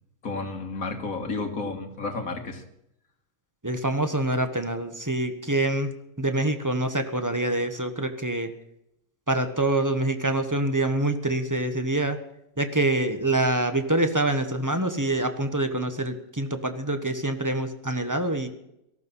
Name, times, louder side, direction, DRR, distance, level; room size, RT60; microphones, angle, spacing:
voice 1, 0.2-2.6, left 3 dB, 50° left, 5 dB, 2.1 m, -31 dB
voice 2, 3.6-5.9 6.2-8.5 9.3-12.2 12.6-18.5, right 2 dB, 10° right, 7 dB, 1.1 m, -25 dB
18.0 x 13.5 x 5.6 m, 0.81 s
omnidirectional pair, 1.9 m